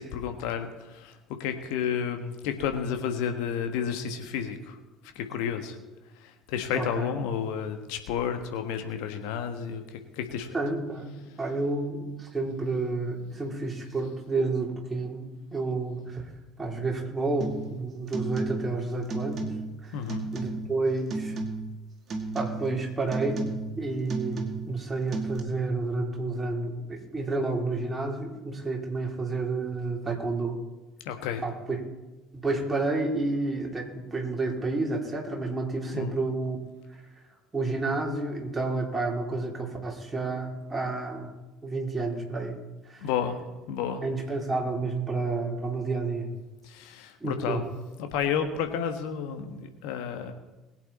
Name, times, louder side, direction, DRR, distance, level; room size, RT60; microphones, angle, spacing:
voice 1, 0.0-4.8 5.1-5.8 6.2-10.5 19.9-20.3 31.0-31.4 35.9-36.1 43.0-43.4 43.7-44.0 46.6-47.6 48.0-50.3, left 7 dB, 65° left, 7 dB, 1.4 m, -31 dB
voice 2, 6.7-7.1 10.5-16.3 16.6-19.5 19.8-20.0 20.3-21.3 22.3-23.4 23.8-30.6 31.4-31.8 32.3-36.6 37.5-41.3 41.6-42.6 42.9-43.1 44.0-46.3 47.2-47.6, right 3 dB, 15° right, -1 dB, 3.6 m, -30 dB
sound 1, 17.4-17.7 18.1-18.8 19.1-19.8 20.1-20.8 21.1-21.8 22.1-22.8 23.1-23.8 24.1-24.8 25.1-25.4, right 3 dB, 40° right, 1.9 m, -33 dB
21.0 x 8.2 x 4.2 m, 1.1 s
figure-of-eight pair, 60°, 0 cm